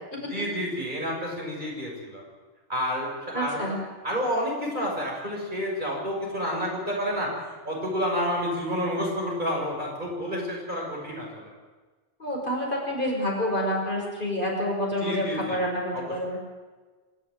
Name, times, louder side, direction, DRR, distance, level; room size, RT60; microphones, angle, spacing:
voice 1, 0.3-2.2 2.7-3.6 4.0-11.5 15.0-15.6 15.9-16.1, equal, 40° right, -2 dB, 7.0 m, -29 dB
voice 2, 3.3-3.8 12.2-16.4, equal, 45° left, -2 dB, 6.4 m, -28 dB
26.5 x 13.5 x 9.1 m, 1.3 s
omnidirectional pair, 1.2 m